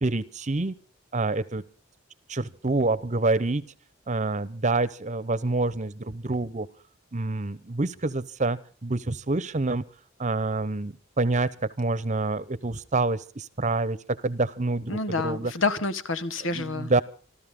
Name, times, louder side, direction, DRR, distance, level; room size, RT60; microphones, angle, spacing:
voice 1, 0.0-0.8 1.1-1.6 2.3-3.6 4.1-6.7 7.1-9.8 10.2-15.5 16.5-17.0, right 2 dB, 35° right, 1.0 m, -27 dB
voice 2, 14.9-17.0, left 3 dB, 80° left, 1.5 m, -28 dB
27.0 x 13.5 x 3.8 m
head